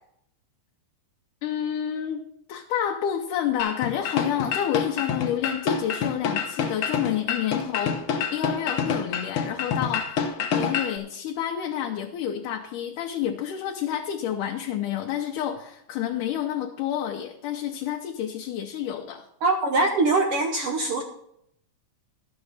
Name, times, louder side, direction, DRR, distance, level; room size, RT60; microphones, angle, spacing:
voice 1, 1.4-2.2 2.5-8.0 8.3-10.2 10.5-19.3, left 10 dB, 80° left, 1 dB, 2.3 m, -29 dB
sound 1, 3.6-11.0, left 6 dB, 60° left, 1.5 m, -27 dB
voice 2, 19.4-21.0, right 3 dB, 70° right, 3 dB, 1.4 m, -23 dB
12.0 x 7.2 x 6.5 m, 0.74 s
omnidirectional pair, 3.7 m